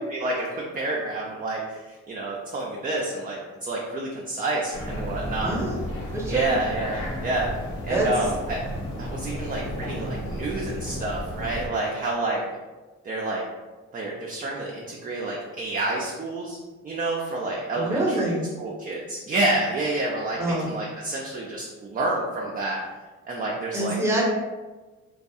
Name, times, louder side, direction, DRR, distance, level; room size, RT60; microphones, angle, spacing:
voice 1, 0.1-5.5 6.3-7.5 7.8-8.6 9.0-12.4 13.0-13.4 13.9-16.6 16.8-18.3 18.6-22.8 23.3-24.0, right 2 dB, 30° right, -3 dB, 0.4 m, -29 dB
sound 1, 4.7-11.7, equal, 65° left, 0.9 m, -33 dB
voice 2, 5.4-5.7 6.1-6.6 7.9-8.1 17.7-18.4 20.4-20.7 23.7-24.3, right 1 dB, 10° right, -4 dB, 0.7 m, -25 dB
2.3 x 2.3 x 2.7 m, 1.2 s
cardioid pair, 90°, 30 cm